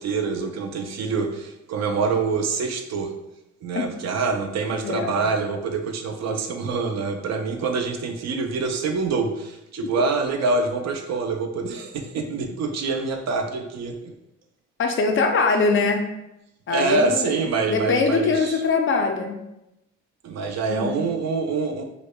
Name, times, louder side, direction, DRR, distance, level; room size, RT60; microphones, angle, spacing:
voice 1, 0.0-3.1 3.6-13.9 16.7-18.6 20.2-21.8, right 4 dB, 60° right, 5 dB, 0.5 m, -25 dB
voice 2, 4.8-5.2 14.8-16.0 16.7-17.4 17.7-19.4 20.7-21.0, left 4 dB, 45° left, 4 dB, 0.5 m, -22 dB
4.8 x 2.1 x 2.2 m, 0.89 s
cardioid pair, 90°, 30 cm